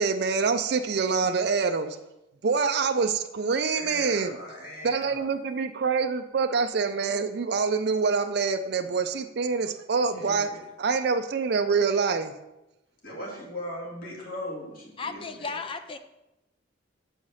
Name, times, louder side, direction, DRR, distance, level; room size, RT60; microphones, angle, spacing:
voice 1, 0.0-2.0 2.4-4.4 4.8-10.5 10.8-12.3, right 5 dB, 55° right, 7 dB, 0.4 m, -26 dB
voice 2, 3.7-5.3 10.0-10.6 13.0-15.6, left 1 dB, 45° left, -2 dB, 2.1 m, -39 dB
voice 3, 15.0-16.0, left 4 dB, 25° left, 9 dB, 0.4 m, -35 dB
7.1 x 4.8 x 5.5 m, 0.93 s
head